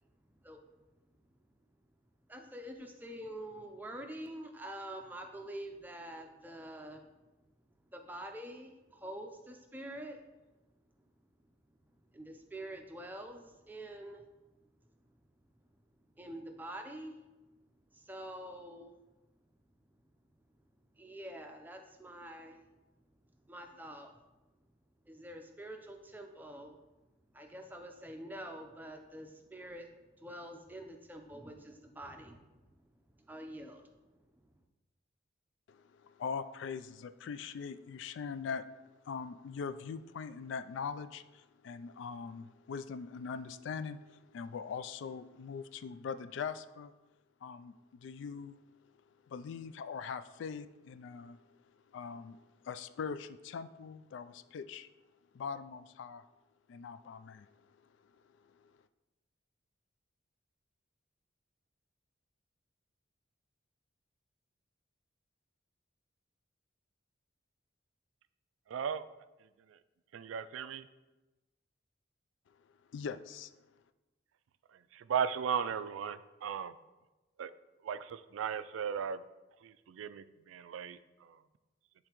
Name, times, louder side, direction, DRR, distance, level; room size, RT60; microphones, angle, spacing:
voice 1, 2.3-7.0 7.9-10.2 12.1-14.3 16.2-17.2 17.9-18.9 20.9-22.6 23.5-24.1 25.1-26.8 27.3-29.9 30.2-32.8 33.2-34.5, right 1 dB, 10° right, 4 dB, 0.5 m, -46 dB
voice 2, 35.7-38.6 39.0-46.9 47.4-48.6 49.3-51.4 51.9-54.9 55.3-56.2 56.7-57.5 58.6-58.7 72.9-73.5, left 6 dB, 70° left, 12 dB, 0.3 m, -42 dB
voice 3, 68.7-69.0 69.7-69.8 70.1-70.9 74.7-76.7 77.4-77.5 77.8-79.2 79.6-81.4, right 7 dB, 85° right, 14 dB, 0.3 m, -37 dB
9.9 x 3.7 x 3.0 m, 1.1 s
head